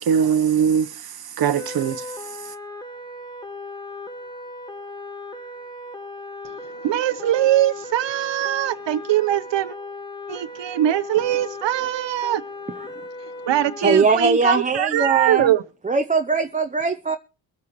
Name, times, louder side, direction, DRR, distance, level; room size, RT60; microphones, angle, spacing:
voice 1, 0.0-2.5, right 7 dB, 55° right, 1.0 m, -22 dB
sound 1, 1.6-14.1, left 2 dB, 10° left, 1.5 m, -37 dB
voice 2, 6.4-9.7 10.3-12.4 13.4-15.6, right 12 dB, 85° right, 1.1 m, -22 dB
voice 3, 12.8-13.1 13.8-15.5 15.8-17.2, right 4 dB, 20° right, 0.7 m, -21 dB
23.0 x 8.6 x 3.0 m
cardioid pair, 95°, 43 cm